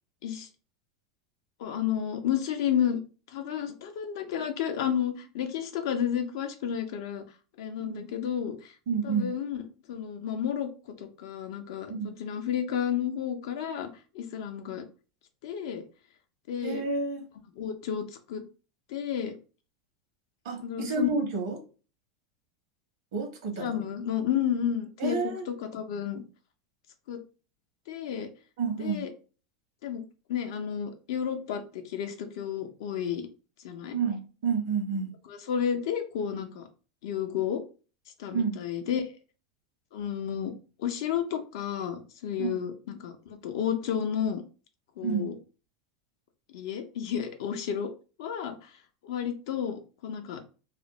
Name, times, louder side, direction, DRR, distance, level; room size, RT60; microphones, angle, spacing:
voice 1, 1.6-3.0 3.3-7.2 7.6-8.7 9.0-13.9 14.1-14.8 15.4-15.8 16.5-16.8 17.6-18.4 18.9-19.4 20.6-21.1 23.6-26.2 27.1-27.2 27.9-28.3 28.8-29.1 29.8-33.3 33.6-34.0 35.3-36.7 37.0-37.6 38.2-39.0 39.9-40.5 40.8-44.4 45.0-45.4 46.5-47.9 48.2-48.7 49.0-50.5, left 9 dB, 70° left, 0.5 m, -31 dB
voice 2, 8.9-9.3 11.9-12.1 16.6-17.2 20.4-21.6 23.1-23.7 25.0-25.5 28.6-29.0 33.9-35.1 38.3-38.6 42.4-42.5 45.0-45.3, right 5 dB, 75° right, 0.8 m, -30 dB
2.4 x 2.1 x 2.9 m
hypercardioid pair, 110°, 2 cm